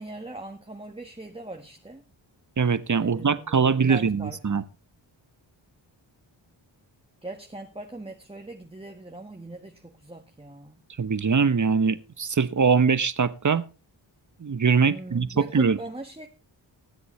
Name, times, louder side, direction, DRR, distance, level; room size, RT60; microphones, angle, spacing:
voice 1, 0.0-2.0 3.0-4.4 7.2-10.8 14.9-16.3, right 2 dB, 10° right, 3 dB, 1.6 m, -40 dB
voice 2, 2.6-4.6 11.0-13.6 14.4-15.3 15.5-15.8, right 5 dB, 40° right, 14 dB, 1.1 m, -22 dB
20.0 x 7.9 x 3.3 m, 0.32 s
cardioid pair, 50°, 48 cm